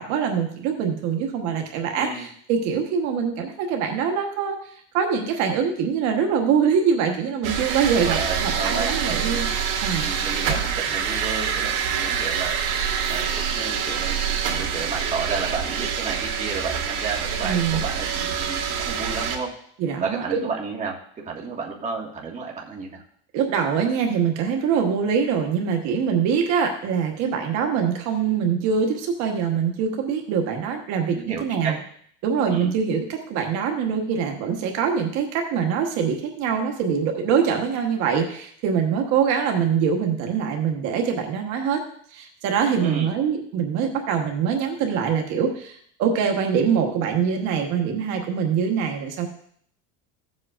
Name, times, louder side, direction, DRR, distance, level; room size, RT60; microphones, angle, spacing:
voice 1, 0.0-9.5 9.8-10.1 17.4-17.8 19.8-20.4 23.3-31.8 32.2-41.8 42.1-49.3, right 7 dB, 60° right, 3 dB, 1.2 m, -24 dB
voice 2, 2.0-2.3 8.0-9.4 9.9-12.6 13.1-19.5 20.0-21.0 21.3-23.0 31.1-31.7 32.5-32.7 42.8-43.1, right 5 dB, 20° right, -2 dB, 1.7 m, -32 dB
sound 1, 7.4-19.4, right 7 dB, 75° right, 2.2 m, -26 dB
15.5 x 7.6 x 2.5 m, 0.63 s
cardioid pair, 140°, 31 cm